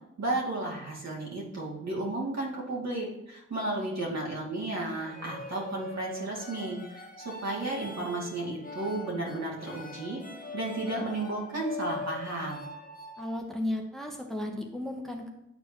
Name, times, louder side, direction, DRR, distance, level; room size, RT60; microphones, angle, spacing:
voice 1, 0.2-10.2 10.5-12.7, right 2 dB, 60° right, -4 dB, 2.5 m, -33 dB
sound 1, 5.0-13.4, left 2 dB, 30° left, 1.3 m, -42 dB
voice 2, 13.2-15.3, left 1 dB, ahead, 2 dB, 1.1 m, -34 dB
10.5 x 4.5 x 3.0 m, 0.89 s
cardioid pair, 50°, 30 cm